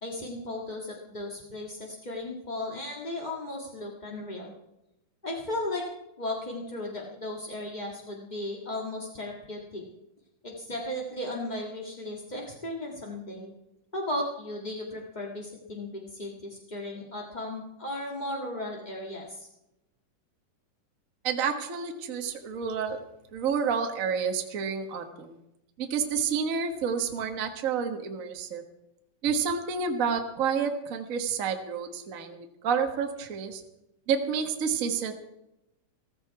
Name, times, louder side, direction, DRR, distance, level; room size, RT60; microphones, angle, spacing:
voice 1, 0.0-4.5 5.2-5.8 6.2-9.8 10.4-13.5 13.9-19.5, left 1 dB, 25° left, -2 dB, 1.1 m, -35 dB
voice 2, 21.2-23.0 23.3-25.4 25.8-28.6 29.2-33.6 34.1-35.1, right 6 dB, 75° right, 5 dB, 0.7 m, -29 dB
15.0 x 15.0 x 4.7 m, 0.88 s
omnidirectional pair, 3.7 m